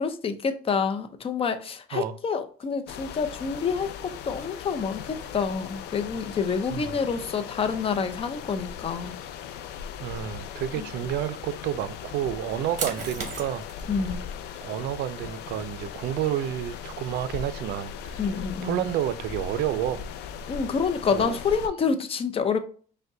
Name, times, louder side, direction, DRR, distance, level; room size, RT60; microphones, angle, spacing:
voice 1, 0.0-9.2 10.8-10.9 13.9-14.2 18.2-18.9 20.5-22.6, left 5 dB, 35° left, 0.6 m, -28 dB
sound 1, 2.6-19.6, right 5 dB, 50° right, 1.1 m, -45 dB
sound 2, 2.9-21.7, left 8 dB, 80° left, 0.5 m, -38 dB
voice 2, 10.0-13.7 14.6-18.2 18.6-20.1 21.1-21.4, right 11 dB, 75° right, 0.4 m, -30 dB
5.2 x 2.2 x 3.6 m
cardioid pair, 110°, 17 cm